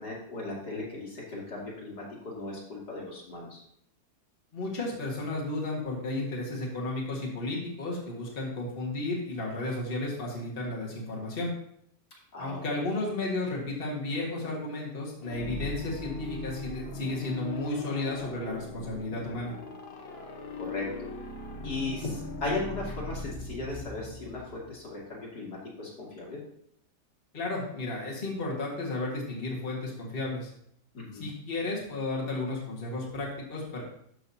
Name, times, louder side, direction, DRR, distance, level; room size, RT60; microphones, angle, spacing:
voice 1, 0.0-3.6 12.3-13.0 20.6-20.9 21.6-26.4 30.9-31.2, left 2 dB, 70° left, -4 dB, 3.0 m, -37 dB
voice 2, 4.5-11.5 12.4-19.5 27.3-30.5 31.1-33.8, left 2 dB, 35° left, -4 dB, 1.9 m, -33 dB
sound 1, 15.2-24.9, left 2 dB, 50° left, 0.8 m, -40 dB
12.5 x 6.4 x 2.8 m, 0.70 s
omnidirectional pair, 1.8 m